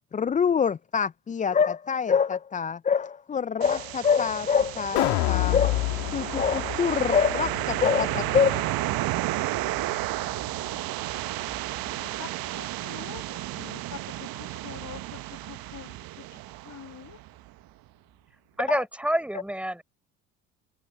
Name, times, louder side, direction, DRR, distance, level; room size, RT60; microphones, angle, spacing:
voice 1, 0.1-8.6 18.7-18.8, left 6 dB, 20° left, 0.5 m, -25 dB
sound 1, 3.6-17.5, right 17 dB, 55° right, 1.2 m, -32 dB
sound 2, 5.0-11.2 11.6-11.7, left 21 dB, 65° left, 2.0 m, -31 dB
voice 2, 11.8-17.2, left 8 dB, 45° left, 6.5 m, -45 dB
voice 3, 18.6-19.8, right 1 dB, 5° right, 4.9 m, -27 dB
hypercardioid pair, 65°, 42 cm